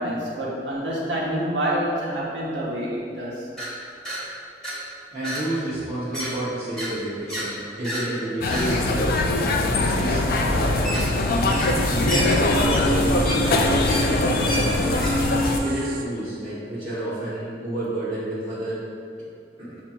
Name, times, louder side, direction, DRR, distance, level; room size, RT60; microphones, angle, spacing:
voice 1, 0.0-3.5, right 1 dB, 85° right, -5 dB, 1.0 m, -27 dB
sound 1, 3.6-3.7 4.1-4.2 4.6-4.8 5.2-5.4 5.7-6.3 6.8-6.9 7.3-7.5 7.8-8.1 8.5-8.7 10.8-11.1 11.5-11.8 12.1-15.1, equal, 5° left, 1.2 m, -30 dB
voice 2, 5.1-9.4 9.7-10.2 10.4-15.0 15.6-18.8 19.6-19.8, right 1 dB, 35° right, -13 dB, 1.0 m, -30 dB
sound 2, 8.4-15.6, left 2 dB, 55° left, 0.3 m, -22 dB
sound 3, 9.6-16.0, right 1 dB, 55° right, 0.4 m, -29 dB
7.1 x 2.9 x 2.4 m, 2.4 s
head